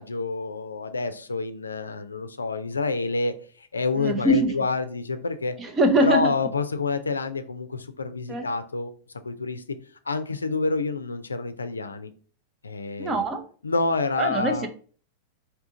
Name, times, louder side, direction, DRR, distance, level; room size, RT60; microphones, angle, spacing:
voice 1, 0.0-5.5 6.0-8.9 9.2-9.6 10.1-12.1 12.6-13.2 13.6-14.7, left 3 dB, 90° left, 0.4 m, -28 dB
voice 2, 4.0-4.5 5.6-6.3 8.3-8.5 13.0-13.4 14.2-14.7, right 1 dB, 25° right, 0.7 m, -22 dB
3.6 x 2.7 x 3.7 m
hypercardioid pair, 95°, 0 cm